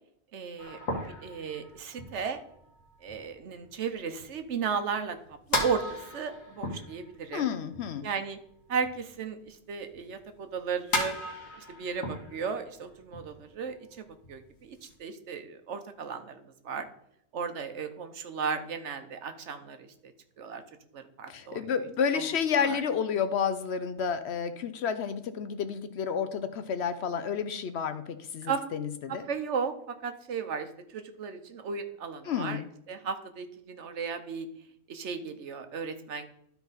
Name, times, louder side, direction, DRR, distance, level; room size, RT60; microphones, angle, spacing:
voice 1, 0.3-2.4 3.0-5.2 5.5-7.5 8.0-8.4 8.7-11.2 11.6-16.9 17.3-20.1 20.4-20.6 20.9-21.6 22.6-22.8 28.4-28.6 29.1-32.6 32.9-34.5 34.9-36.3, right 6 dB, 65° right, 8 dB, 1.1 m, -35 dB
sound 1, 0.6-9.2 9.5-14.9, left 1 dB, 85° left, 2.0 m, -37 dB
voice 2, 7.3-8.1 21.3-29.3 32.2-32.7, left 7 dB, 65° left, 11 dB, 0.8 m, -30 dB
12.5 x 4.6 x 4.0 m, 0.73 s
omnidirectional pair, 1.3 m